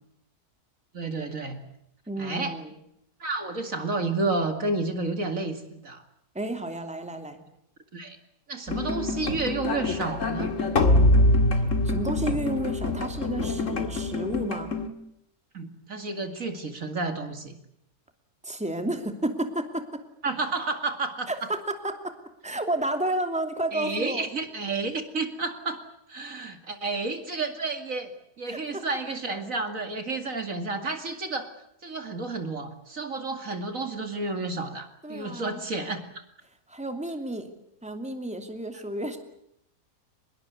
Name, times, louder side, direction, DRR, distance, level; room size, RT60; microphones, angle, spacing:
voice 1, 0.9-1.6 2.2-2.6 3.2-6.0 7.9-8.2 8.5-10.5 15.5-17.6 20.2-21.3 23.7-25.8 26.1-28.1 28.4-31.5 31.8-36.2, right 3 dB, 55° right, 7 dB, 2.7 m, -31 dB
voice 2, 2.1-2.7 6.3-7.4 11.5-14.7 18.4-20.0 21.3-22.2 22.4-24.3 28.5-28.8 35.0-35.6 36.7-37.5 37.8-39.2, right 1 dB, 5° right, 6 dB, 2.6 m, -31 dB
sound 1, 8.7-14.9, left 1 dB, 50° left, 2.4 m, -24 dB
25.0 x 22.0 x 8.3 m, 0.74 s
omnidirectional pair, 1.7 m